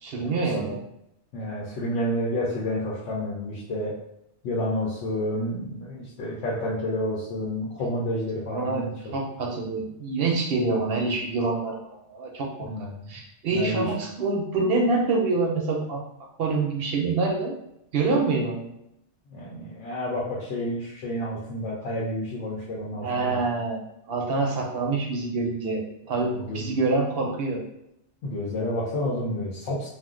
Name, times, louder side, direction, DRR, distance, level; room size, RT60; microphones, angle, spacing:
voice 1, 0.0-0.8 8.5-8.8 9.1-11.8 12.1-16.0 16.4-17.5 17.9-18.7 23.0-23.8 24.1-27.6, right 3 dB, 65° right, 1 dB, 0.7 m, -26 dB
voice 2, 1.3-3.9 4.4-8.9 12.6-13.1 13.5-13.9 19.3-23.4 26.2-26.7 28.2-29.9, left 1 dB, 85° left, -6 dB, 1.0 m, -30 dB
2.5 x 2.1 x 3.6 m, 0.81 s
omnidirectional pair, 1.2 m